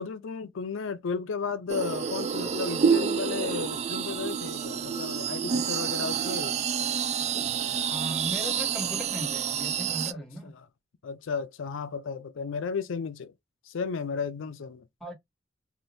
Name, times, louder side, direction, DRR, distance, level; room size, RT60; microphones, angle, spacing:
voice 1, 0.0-6.6 11.0-13.3 13.7-14.8, left 5 dB, 80° left, 0.4 m, -33 dB
sound 1, 1.7-10.1, right 7 dB, 35° right, 0.3 m, -28 dB
voice 2, 7.9-10.5 15.0-15.1, equal, 5° left, 1.5 m, -37 dB
3.6 x 2.5 x 2.6 m
head